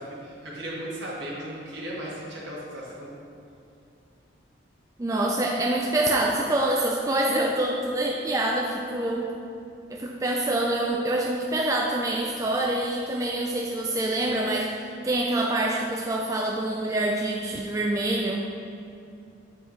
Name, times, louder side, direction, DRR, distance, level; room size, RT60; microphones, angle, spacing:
voice 1, 0.0-3.1, right 1 dB, 65° right, -5 dB, 1.7 m, -36 dB
voice 2, 5.0-9.3 9.9-18.4, right 1 dB, 15° right, -1 dB, 0.3 m, -26 dB
7.8 x 5.8 x 3.2 m, 2.6 s
head